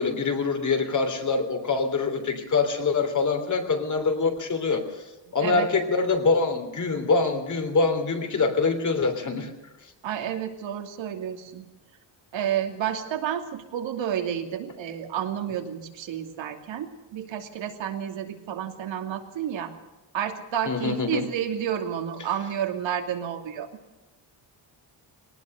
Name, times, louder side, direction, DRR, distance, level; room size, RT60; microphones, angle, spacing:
voice 1, 0.0-4.8 5.3-9.5 20.7-21.2, left 4 dB, 40° left, 6 dB, 3.3 m, -24 dB
voice 2, 5.3-5.7 10.0-11.7 12.3-19.7 20.1-23.7, right 9 dB, 80° right, 4 dB, 2.8 m, -30 dB
20.5 x 19.0 x 6.7 m, 1.1 s
cardioid pair, 130°, 45 cm